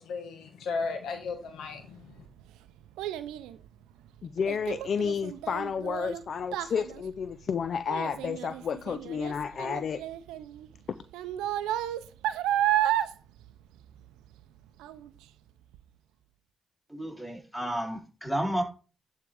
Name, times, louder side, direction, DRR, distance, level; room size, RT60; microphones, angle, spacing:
voice 1, 0.0-2.1, left 4 dB, 80° left, 5 dB, 1.4 m, -35 dB
Child speech kid speaking, 1.8-14.5 14.8-15.2 15.7-15.8, right 12 dB, 90° right, 0.5 m, -32 dB
voice 2, 4.2-10.0, left 6 dB, 60° left, 13 dB, 0.4 m, -31 dB
voice 3, 16.9-18.6, equal, 5° left, 0 dB, 3.8 m, -31 dB
11.0 x 3.6 x 4.9 m, 0.36 s
supercardioid pair, 50°, 0 cm